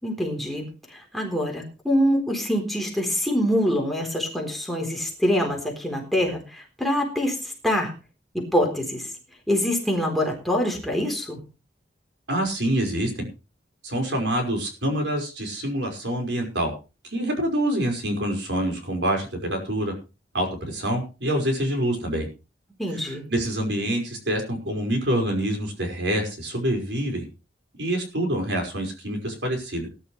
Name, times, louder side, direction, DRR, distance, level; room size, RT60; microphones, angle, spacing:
voice 1, 0.0-7.9 8.3-9.1 9.5-11.4 22.8-23.3, equal, ahead, 0 dB, 3.8 m, -25 dB
voice 2, 12.3-13.3 13.8-16.7 17.0-19.9 20.3-22.3 23.0-27.3 27.8-29.9, right 1 dB, 70° right, 3 dB, 5.4 m, -26 dB
19.5 x 11.5 x 3.3 m, 0.31 s
head